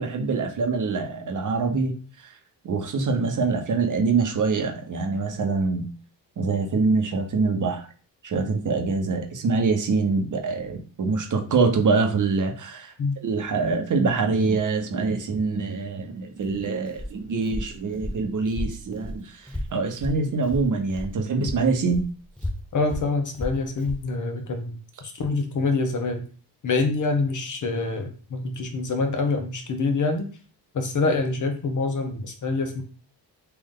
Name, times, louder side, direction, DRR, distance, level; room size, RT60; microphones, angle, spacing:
voice 1, 0.0-2.4 2.6-5.9 6.4-7.9 8.2-12.9 13.2-22.0, right 4 dB, 45° right, 4 dB, 1.0 m, -25 dB
Walk footsteps, 16.4-21.2 21.4-24.1, left 1 dB, 5° left, 0.4 m, -34 dB
voice 2, 22.7-26.2 26.6-30.3 30.7-32.8, left 3 dB, 45° left, 5 dB, 0.9 m, -26 dB
3.2 x 2.6 x 3.7 m, 0.38 s
cardioid pair, 85°, 44 cm